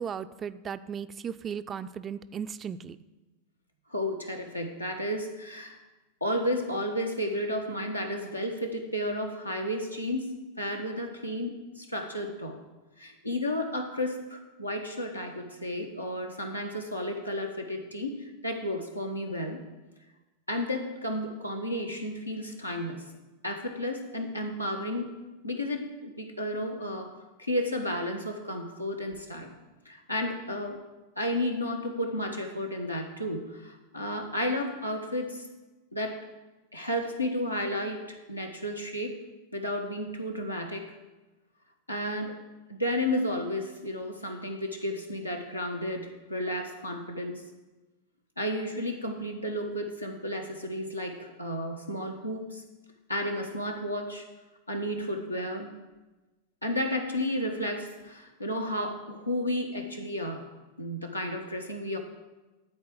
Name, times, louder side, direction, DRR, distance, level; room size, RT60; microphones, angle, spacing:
voice 1, 0.0-3.0, right 7 dB, 25° right, 13 dB, 0.4 m, -36 dB
voice 2, 3.9-5.8 6.2-10.3 10.6-12.6 13.0-19.6 20.5-23.0 23.4-25.1 25.4-27.1 27.4-29.6 29.8-30.8 31.2-35.4 35.9-36.2 36.7-39.2 39.5-40.9 41.9-42.4 42.7-47.4 48.4-52.6 53.1-54.3 54.7-55.7 56.6-60.4 60.8-62.0, left 1 dB, 85° left, 2 dB, 1.3 m, -32 dB
12.0 x 4.6 x 7.5 m, 1.1 s
figure-of-eight pair, 90°, 0 cm